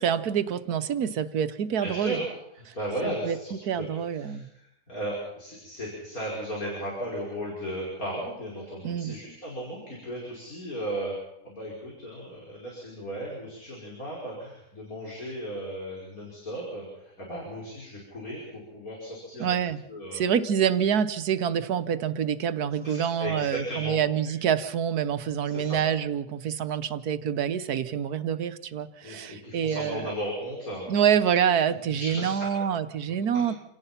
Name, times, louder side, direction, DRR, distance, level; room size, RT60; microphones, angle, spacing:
voice 1, 0.0-2.2 3.0-3.4 3.6-4.5 8.8-9.2 19.4-19.8 20.1-30.1 30.9-33.5, right 8 dB, 80° right, 12 dB, 1.5 m, -26 dB
voice 2, 1.8-2.3 2.5-11.2 11.4-19.6 19.9-20.2 22.8-24.0 24.2-24.3 25.5-25.8 29.0-31.0 31.9-32.5 33.1-33.4, equal, 65° left, -3 dB, 5.9 m, -36 dB
28.0 x 17.5 x 5.7 m, 0.83 s
omnidirectional pair, 1.6 m